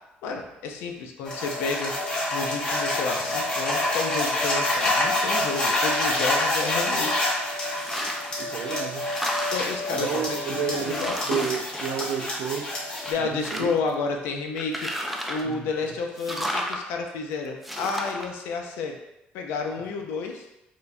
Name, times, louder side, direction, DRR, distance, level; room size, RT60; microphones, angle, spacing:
voice 1, 0.2-2.0 2.3-7.3 9.5-11.2 13.1-14.9 15.3-19.0 19.3-20.5, left 4 dB, 90° left, 3 dB, 0.5 m, -31 dB
sound 1, 1.2-13.1, left 1 dB, 30° left, 1.1 m, -27 dB
sound 2, 7.8-8.4 8.8-9.9 10.5-10.6 10.9-12.6 13.0-13.9 14.6-15.5 16.2-16.8 17.6-18.3, equal, ahead, 0.4 m, -33 dB
voice 2, 8.4-9.1 9.9-12.7 13.2-13.7 15.4-16.0, right 8 dB, 75° right, 4 dB, 0.4 m, -31 dB
4.4 x 2.2 x 2.6 m, 0.89 s
cardioid pair, 115°, 4 cm